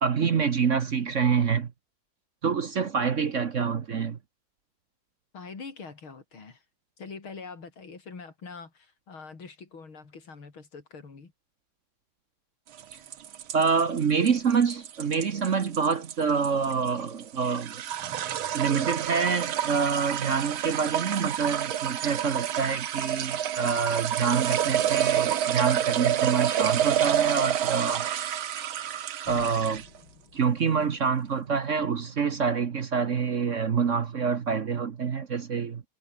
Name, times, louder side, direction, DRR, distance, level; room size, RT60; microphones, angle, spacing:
voice 1, 0.0-1.7 2.4-4.2 13.5-17.8 18.5-28.1 29.3-29.8 30.3-35.8, right 6 dB, 45° right, 1.2 m, -26 dB
voice 2, 5.3-6.6 7.0-11.3, left 4 dB, 90° left, 4.5 m, -44 dB
sound 1, 12.8-30.0, right 10 dB, 90° right, 2.1 m, -28 dB
sound 2, 29.3-33.2, left 4 dB, 65° left, 4.6 m, -52 dB
omnidirectional pair, 2.2 m